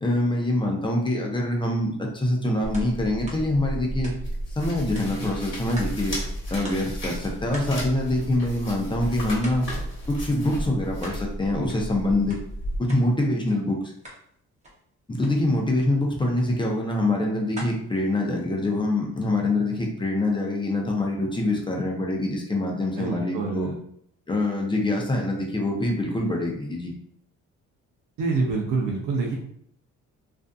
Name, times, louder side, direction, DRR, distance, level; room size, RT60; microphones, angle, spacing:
voice 1, 0.0-4.1 4.6-6.2 6.5-9.7 10.1-12.4 12.8-13.8 15.1-23.7 24.3-26.9, left 1 dB, 15° left, 0 dB, 0.6 m, -25 dB
Rustling through paper, 2.6-12.8, equal, 40° left, 1.2 m, -33 dB
sound 1, 2.7-2.9 3.2-4.5 4.9-6.1 6.4-6.5 6.6-7.0 7.5-8.9 9.4-9.7 10.1-11.2 11.5-13.1 13.4-13.6 13.9-14.3 14.6-14.8 15.2-15.4 15.7-15.9 16.3-16.5 17.0-18.8, equal, 25° right, 0.8 m, -44 dB
voice 2, 23.0-23.8 28.2-29.4, right 4 dB, 80° right, -1 dB, 0.5 m, -26 dB
2.5 x 2.4 x 2.3 m, 0.68 s
cardioid pair, 90°, 30 cm